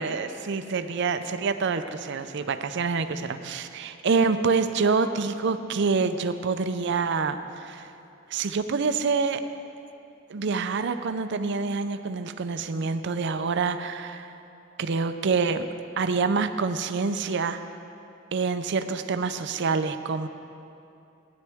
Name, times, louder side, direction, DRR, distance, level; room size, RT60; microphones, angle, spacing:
voice 1, 0.0-7.9 8.3-9.4 10.3-14.3 14.8-15.7 16.0-17.6 18.3-20.3, right 4 dB, 60° right, 9 dB, 0.5 m, -26 dB
16.0 x 10.5 x 3.5 m, 2.7 s
head